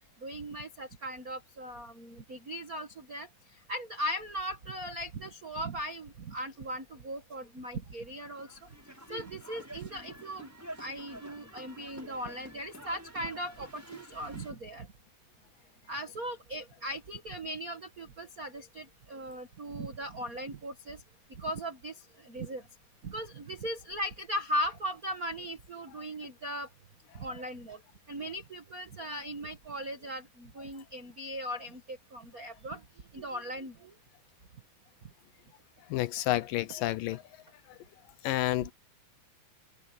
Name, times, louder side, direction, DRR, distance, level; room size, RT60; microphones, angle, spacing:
voice 1, 0.2-8.6 9.1-10.5 10.8-14.9 15.9-21.0 21.3-22.6 23.0-26.7 27.1-27.8 28.1-32.8 33.1-33.9 38.6-38.7, equal, 70° right, 0.8 m, -38 dB
sound 1, 8.2-14.5, right 1 dB, 5° right, 6.6 m, -48 dB
voice 2, 35.9-37.2 38.2-38.7, left 15 dB, 75° left, 2.2 m, -29 dB
omnidirectional pair, 4.2 m